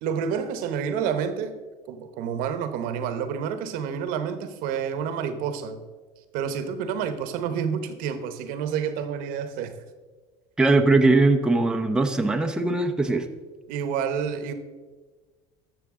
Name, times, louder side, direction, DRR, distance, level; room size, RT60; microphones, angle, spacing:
voice 1, 0.0-1.5 1.9-5.8 6.3-9.8 13.7-14.5, right 7 dB, 70° right, 10 dB, 1.0 m, -29 dB
voice 2, 10.6-13.3, right 2 dB, 5° right, 3 dB, 0.7 m, -20 dB
13.0 x 6.8 x 3.7 m, 1.3 s
supercardioid pair, 110°, 15 cm